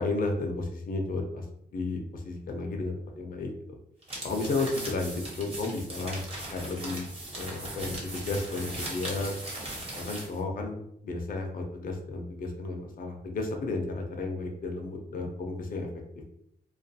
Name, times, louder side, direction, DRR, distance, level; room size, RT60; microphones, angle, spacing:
voice 1, 0.0-1.4 1.7-3.5 4.2-6.2 6.5-7.1 7.4-9.3 9.9-15.9, left 3 dB, 55° left, 2 dB, 0.5 m, -33 dB
sound 1, 4.0-10.4, right 1 dB, 35° right, 1.0 m, -38 dB
2.3 x 2.3 x 2.6 m, 0.73 s
cardioid pair, 90°, 17 cm